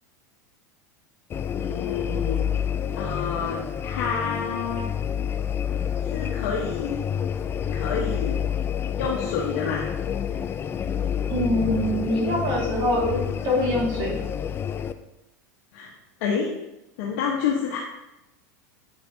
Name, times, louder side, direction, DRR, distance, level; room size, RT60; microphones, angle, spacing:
sound 1, 1.3-14.9, left 8 dB, 25° left, 0.4 m, -28 dB
voice 1, 1.6-2.4 3.0-4.9 6.1-7.0 7.7-8.4 8.9-9.8 15.7-15.9 16.2-16.5 17.0-17.8, left 6 dB, 65° left, -2 dB, 1.0 m, -28 dB
voice 2, 11.3-14.2, left 1 dB, 55° right, -6 dB, 2.7 m, -24 dB
8.1 x 6.3 x 2.7 m, 0.94 s
hypercardioid pair, 105°, 9 cm